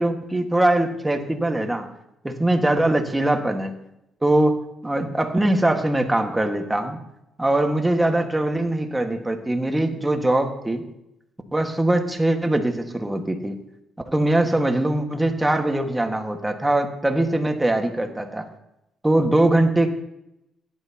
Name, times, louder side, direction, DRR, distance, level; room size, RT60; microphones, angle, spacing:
voice 1, 0.0-1.9 2.2-3.7 4.2-7.0 7.4-10.8 11.5-13.6 14.1-18.5 19.0-19.9, right 1 dB, 10° right, 4 dB, 1.6 m, -22 dB
17.0 x 11.0 x 2.9 m, 0.83 s
cardioid pair, 90°, 0 cm